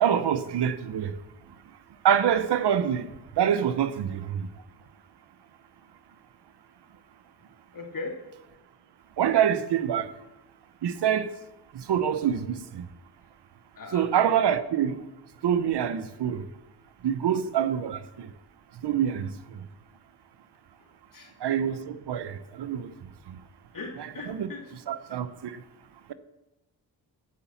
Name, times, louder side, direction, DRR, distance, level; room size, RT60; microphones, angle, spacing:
voice 1, 0.0-1.1 2.0-3.0 3.4-4.4 9.2-10.1 10.8-11.3 11.7-12.8 13.9-14.9 15.4-16.4 17.0-18.0 18.8-19.3 21.4-22.9 24.3-24.5 24.9-25.5, right 9 dB, 80° right, 0.9 m, -25 dB
voice 2, 7.7-8.2 13.8-14.1 20.8-21.3 23.7-24.6, left 3 dB, 55° left, 3.1 m, -39 dB
17.5 x 6.0 x 7.1 m
cardioid pair, 85°, 40 cm